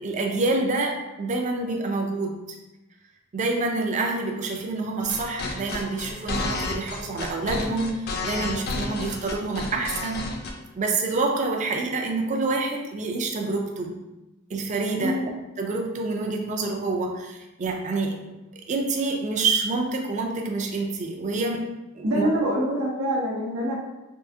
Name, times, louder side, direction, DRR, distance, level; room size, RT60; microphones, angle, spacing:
voice 1, 0.0-2.4 3.3-10.2 10.7-14.0 14.5-15.2 15.6-18.2 18.7-21.6 21.9-22.3, right 3 dB, 35° right, 2 dB, 0.4 m, -27 dB
sound 1, 5.0-10.5, left 2 dB, 50° left, 0.4 m, -31 dB
voice 2, 22.0-23.8, equal, 80° right, -3 dB, 0.8 m, -25 dB
3.6 x 2.5 x 2.6 m, 1.0 s
head